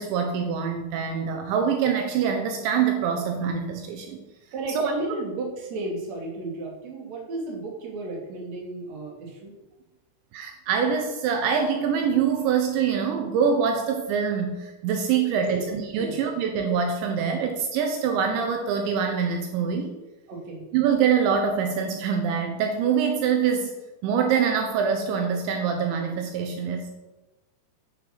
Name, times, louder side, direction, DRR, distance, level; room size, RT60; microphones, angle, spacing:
voice 1, 0.0-4.2 4.7-4.9 10.3-19.9 20.7-23.7 24.0-26.9, right 6 dB, 80° right, 4 dB, 3.3 m, -24 dB
voice 2, 4.5-9.1 15.5-15.6 16.0-16.1 20.3-20.6, right 2 dB, 40° right, -1 dB, 3.5 m, -33 dB
9.4 x 9.1 x 6.8 m, 1.1 s
omnidirectional pair, 5.3 m